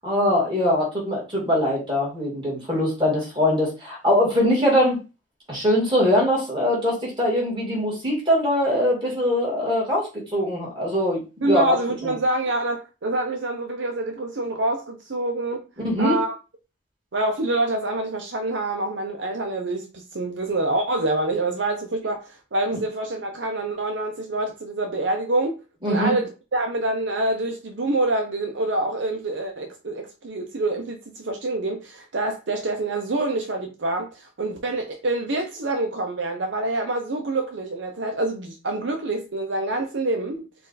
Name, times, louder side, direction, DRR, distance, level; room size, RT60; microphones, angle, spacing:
voice 1, 0.0-5.0 5.5-11.8 12.0-12.1 15.8-16.2 25.8-26.1, left 1 dB, 25° right, 1.9 m, -22 dB
voice 2, 11.4-15.6 16.0-16.4 17.1-25.6 25.9-40.5, right 2 dB, 65° right, 0.7 m, -26 dB
4.3 x 2.5 x 3.9 m
head